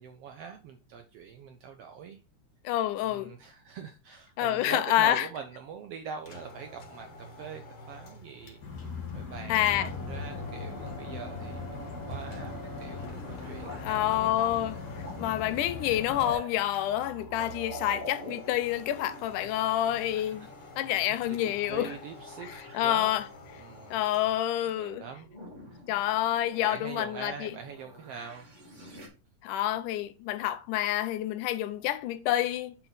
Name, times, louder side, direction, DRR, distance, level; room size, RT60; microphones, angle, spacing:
voice 1, 0.0-2.2 3.1-8.6 9.1-14.3 20.1-20.8 21.3-22.5 22.8-23.1 23.6-24.0 24.7-25.3 25.7-25.8 26.6-28.5, right 7 dB, 75° right, 1.4 m, -43 dB
voice 2, 2.7-3.3 4.4-5.3 9.5-9.9 13.8-14.8 15.2-20.5 20.8-22.0 22.4-23.3 23.9-25.0 25.9-27.5 29.4-32.8, left 13 dB, 90° left, 2.2 m, -28 dB
sound 1, 6.2-24.4, equal, 55° left, 2.4 m, -46 dB
sound 2, 8.6-16.4, left 5 dB, 35° left, 2.1 m, -40 dB
sound 3, 12.1-21.4 21.7-22.9 23.5-24.5 24.9-29.1, left 1 dB, 20° right, 1.2 m, -47 dB
6.6 x 5.7 x 4.0 m
omnidirectional pair, 3.5 m